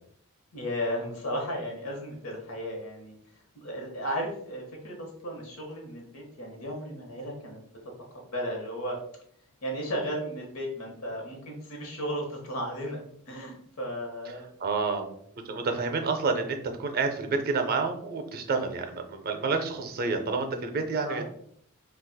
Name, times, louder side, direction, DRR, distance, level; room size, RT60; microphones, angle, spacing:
voice 1, 0.5-3.1 3.5-7.6 8.3-9.0 9.6-14.5 21.0-21.2, equal, 80° left, 1 dB, 1.0 m, -34 dB
voice 2, 14.6-15.2 15.4-21.2, right 4 dB, 45° right, 5 dB, 0.5 m, -29 dB
3.9 x 2.3 x 2.2 m, 0.66 s
head